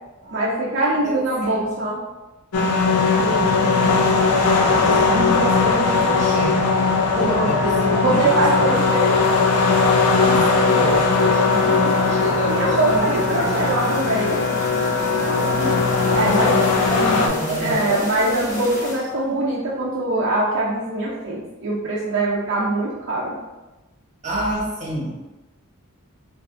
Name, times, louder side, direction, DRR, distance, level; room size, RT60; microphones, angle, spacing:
voice 1, 0.3-2.0 3.1-3.8 7.3-7.5 8.0-9.1 12.5-14.4 16.1-16.6 17.6-23.4, right 2 dB, 55° right, -6 dB, 0.6 m, -23 dB
voice 2, 1.0-1.8 3.1-4.1 4.6-6.7 7.1-8.8 10.0-13.8 15.2-15.8 16.1-18.1 24.2-25.2, right 1 dB, 35° right, -4 dB, 1.0 m, -28 dB
sound 1, 2.5-17.3, left 4 dB, 80° left, 0.5 m, -19 dB
sound 2, 8.7-19.4, left 2 dB, 35° left, 1.1 m, -33 dB
3.4 x 3.3 x 2.5 m, 1.1 s
head